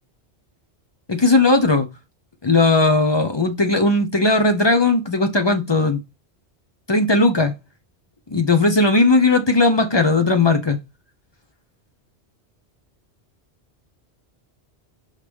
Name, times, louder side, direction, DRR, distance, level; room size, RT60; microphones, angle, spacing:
voice 1, 1.1-1.9 2.4-6.0 6.9-7.5 8.3-10.8, left 3 dB, 30° left, 0.6 m, -17 dB
5.7 x 4.9 x 3.4 m
omnidirectional pair, 1.1 m